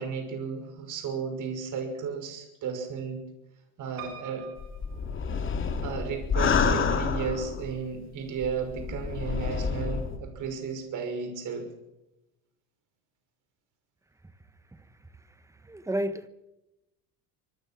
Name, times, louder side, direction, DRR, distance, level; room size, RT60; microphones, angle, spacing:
voice 1, 0.0-3.2 3.8-4.5 5.8-11.7, right 6 dB, 45° right, 6.1 m, -34 dB
Piano, 4.0-6.0 6.6-7.3 7.6-7.7 7.9-8.0, right 9 dB, 85° right, 6.5 m, -46 dB
sound 1, 4.6-7.8 8.4-10.2, left 5 dB, 30° left, 2.9 m, -28 dB
voice 2, 15.6-16.3, right 1 dB, 5° right, 1.4 m, -31 dB
26.0 x 20.5 x 6.1 m
cardioid pair, 155°, 41 cm